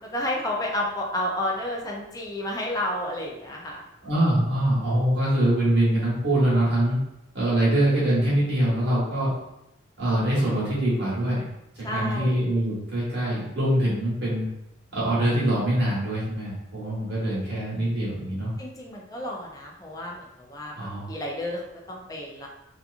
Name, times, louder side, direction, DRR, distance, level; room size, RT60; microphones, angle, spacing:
voice 1, 0.0-3.8 11.8-12.4 18.6-21.6 21.9-22.5, left 1 dB, 20° left, -1 dB, 0.4 m, -31 dB
voice 2, 4.0-7.0 7.3-9.3 10.0-11.4 11.9-14.5 14.9-18.5 20.7-21.1, right 1 dB, 55° right, -8 dB, 1.3 m, -24 dB
2.8 x 2.4 x 2.4 m, 0.87 s
head